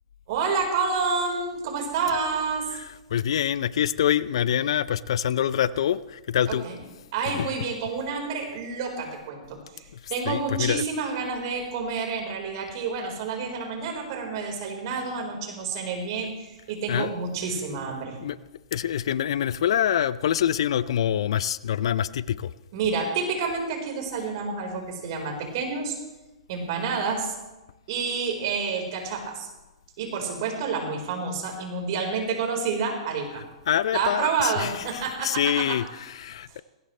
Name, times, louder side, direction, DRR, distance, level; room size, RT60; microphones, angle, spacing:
voice 1, 0.3-2.7 6.5-6.8 7.1-18.2 22.7-26.0 26.5-27.3 27.9-29.5 30.0-33.4 33.9-35.8, right 5 dB, 50° right, 2 dB, 4.5 m, -29 dB
voice 2, 2.7-6.7 7.3-7.5 10.3-10.8 16.9-17.1 18.2-18.4 18.7-22.5 33.7-36.6, left 10 dB, 65° left, 18 dB, 0.5 m, -25 dB
19.5 x 16.5 x 3.3 m, 1.0 s
hypercardioid pair, 115°, 3 cm